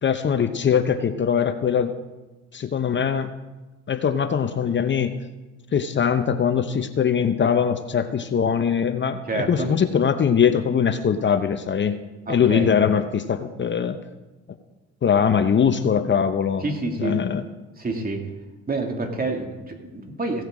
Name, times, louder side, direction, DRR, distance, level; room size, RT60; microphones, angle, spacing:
voice 1, 0.0-1.9 2.5-3.3 3.9-5.2 5.7-12.0 12.3-14.0 15.0-16.6 17.0-17.4, left 7 dB, 40° left, 9 dB, 0.8 m, -21 dB
voice 2, 9.3-9.7 12.3-12.7 16.6-17.2 17.8-18.2 18.7-20.4, right 3 dB, 30° right, 3 dB, 2.5 m, -28 dB
16.5 x 7.8 x 4.9 m, 1.1 s
supercardioid pair, 75°, 30 cm